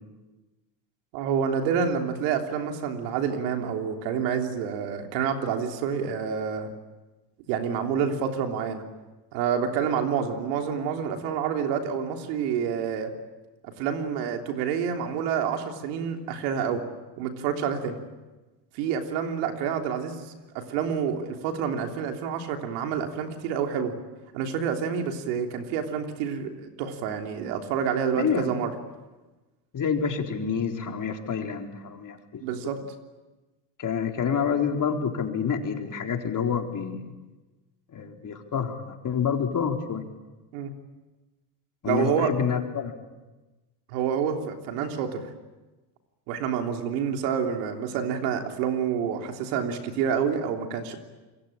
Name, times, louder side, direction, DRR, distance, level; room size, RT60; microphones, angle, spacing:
voice 1, 1.1-6.7 7.5-8.8 9.3-13.1 13.6-16.8 17.2-18.0 18.7-23.9 24.3-28.7 32.4-32.8 40.5-40.7 41.9-42.3 43.9-45.3 46.3-51.0, right 7 dB, 80° right, 4 dB, 3.5 m, -28 dB
voice 2, 28.2-28.6 29.7-32.4 33.8-37.1 37.9-40.0 41.8-42.9, left 7 dB, 40° left, 3 dB, 4.1 m, -28 dB
27.0 x 23.5 x 8.8 m, 1.1 s
supercardioid pair, 90°, 48 cm